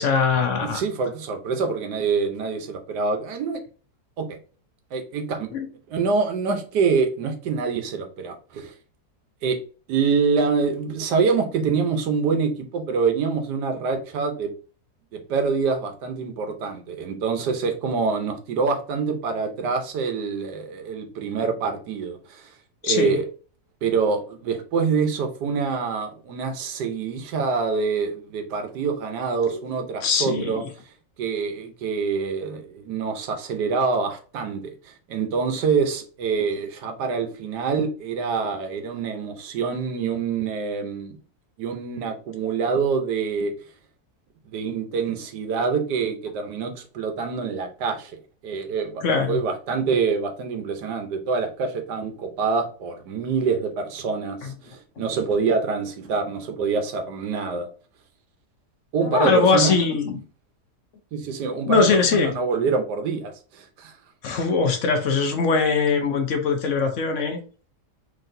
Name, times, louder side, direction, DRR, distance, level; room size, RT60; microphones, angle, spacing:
voice 1, 0.0-0.8 5.5-5.7 22.8-23.2 29.5-29.6 30.0-30.7 49.0-49.4 54.4-54.5 59.1-60.2 61.7-62.3 64.2-67.4, left 5 dB, 60° left, 0.9 m, -21 dB
voice 2, 0.6-3.6 4.2-4.4 4.9-5.5 5.9-8.7 9.4-9.6 9.9-14.5 15.3-22.5 22.8-23.2 23.8-30.6 31.2-41.2 41.6-43.5 44.5-48.2 48.4-49.0 49.3-57.7 58.9-59.7 61.1-63.9, right 5 dB, 90° right, 1.4 m, -25 dB
4.0 x 3.4 x 2.6 m
omnidirectional pair, 1.7 m